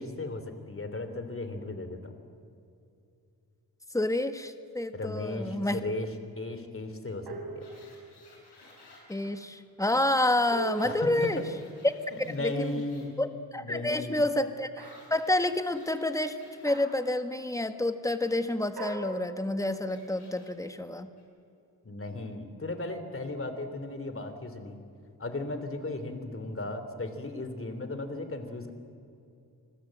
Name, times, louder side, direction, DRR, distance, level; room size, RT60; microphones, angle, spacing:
voice 1, 0.0-2.1 4.9-7.6 10.8-11.4 12.1-13.2 13.6-14.2 21.8-24.8 25.2-28.7, left 2 dB, 35° left, 9 dB, 3.2 m, -36 dB
voice 2, 3.9-5.8 9.1-11.4 11.8-11.9 12.4-12.7 13.2-16.4 16.6-21.1, left 1 dB, 10° left, 9 dB, 1.5 m, -29 dB
sound 1, 7.3-8.2 10.5-12.2 14.8-15.2 16.7-17.2 18.8-20.0, right 3 dB, 70° right, 4.7 m, -40 dB
sound 2, 7.6-9.3 10.3-13.0 14.8-16.8 18.2-18.4 19.9-20.5 21.2-21.3, left 3 dB, 85° left, 7.6 m, -58 dB
28.5 x 20.5 x 7.8 m, 2.6 s
cardioid pair, 85°, 39 cm